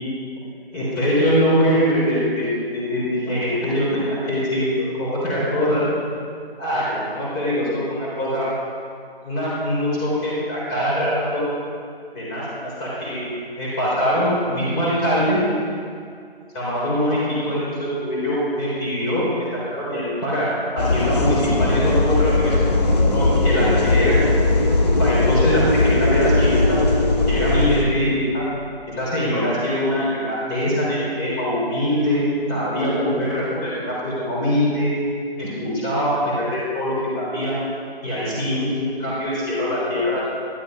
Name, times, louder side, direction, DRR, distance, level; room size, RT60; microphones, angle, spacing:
voice 1, 0.7-5.8 6.6-8.5 9.2-11.4 12.1-13.3 13.6-15.4 16.5-17.2 17.4-19.2 19.7-20.5 20.7-22.7 23.1-24.2 25.0-26.8 27.3-28.4 29.0-32.2 32.5-34.9 35.4-37.5 38.0-40.2, equal, 15° left, -7 dB, 3.4 m, -23 dB
sound 1, 20.8-27.8, left 2 dB, 40° left, 1.6 m, -18 dB
12.5 x 11.5 x 5.1 m, 2.3 s
figure-of-eight pair, 160°, 31 cm